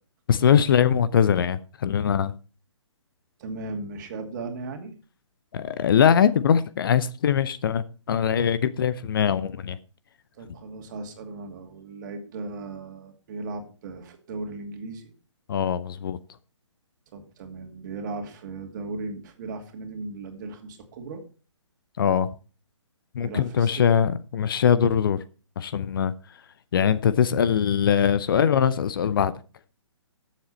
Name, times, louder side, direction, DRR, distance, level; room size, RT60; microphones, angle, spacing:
voice 1, 0.3-2.3 5.5-9.8 15.5-16.2 22.0-22.3 23.1-25.2 25.6-26.1 26.7-29.3, left 8 dB, 45° left, 0.7 m, -22 dB
voice 2, 3.4-4.9 10.3-15.1 17.1-21.2 23.2-23.7, right 3 dB, 40° right, 2.5 m, -37 dB
13.0 x 7.3 x 4.3 m
figure-of-eight pair, 135°, 16 cm